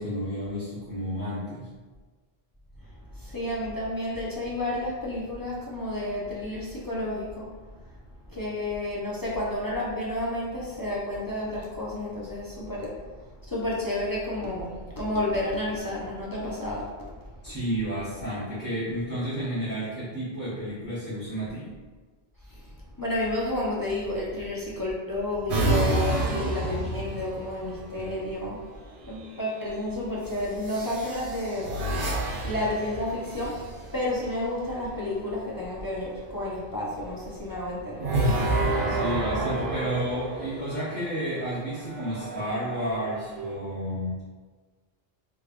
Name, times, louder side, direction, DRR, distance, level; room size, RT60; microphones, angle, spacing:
voice 1, 0.0-1.7 17.4-21.7 27.9-28.1 38.9-44.2, equal, 10° left, -13 dB, 0.9 m, -31 dB
voice 2, 3.1-7.5 8.3-12.9 13.5-16.8 22.5-22.7 23.0-28.6 29.1-31.7 32.2-33.6 33.9-38.2, left 1 dB, 30° left, -6 dB, 0.4 m, -31 dB
sound 1, 25.5-27.7 29.0-29.5 30.6-34.0 38.0-40.9 41.7-43.5, right 2 dB, 60° right, 0.8 m, -29 dB
3.3 x 3.2 x 2.4 m, 1.4 s
omnidirectional pair, 1.0 m